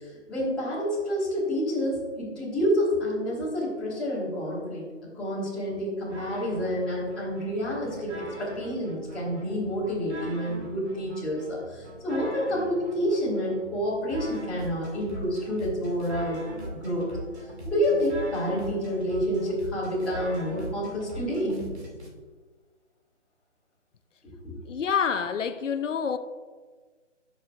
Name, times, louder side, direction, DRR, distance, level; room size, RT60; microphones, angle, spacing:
voice 1, 0.3-4.8 5.1-16.4 16.8-17.1 17.6-21.6 24.2-24.6, equal, ahead, -14 dB, 1.5 m, -28 dB
sound 1, 6.1-22.1, right 1 dB, 60° right, 2.2 m, -41 dB
voice 2, 24.7-26.2, left 7 dB, 90° left, 10 dB, 0.7 m, -27 dB
14.5 x 6.4 x 2.4 m, 1.5 s
hypercardioid pair, 170°, 36 cm